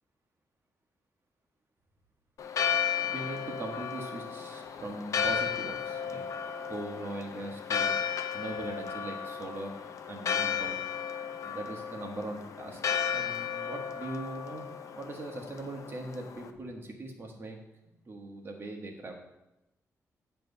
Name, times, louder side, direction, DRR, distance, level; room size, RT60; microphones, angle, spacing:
Church bell, 2.4-16.5, left 7 dB, 65° left, 0.6 m, -34 dB
voice 1, 3.1-6.2 6.6-7.9 8.3-9.7 10.1-10.8 11.4-14.6 15.0-17.6 18.1-19.1, right 2 dB, 40° right, 1 dB, 1.5 m, -40 dB
9.1 x 3.4 x 6.7 m, 0.95 s
cardioid pair, 115°, 6 cm